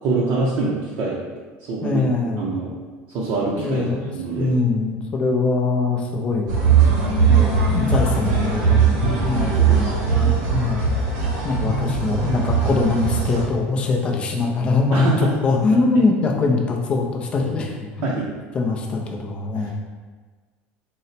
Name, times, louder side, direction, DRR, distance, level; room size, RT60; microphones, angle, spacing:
voice 1, 0.0-1.2 1.6-2.0 2.4-2.7 3.1-3.8 4.1-4.5 9.0-9.9 10.2-10.5 14.9-15.3 18.0-18.3, right 3 dB, 45° right, -6 dB, 0.5 m, -25 dB
voice 2, 1.8-2.5 3.6-4.1 4.4-6.7 7.3-10.8 11.4-18.1 18.5-19.7, left 3 dB, 25° left, 1 dB, 0.4 m, -22 dB
sound 1, 6.5-13.5, right 5 dB, 80° right, 0.8 m, -19 dB
3.9 x 2.1 x 4.1 m, 1.4 s
cardioid pair, 170°, 5 cm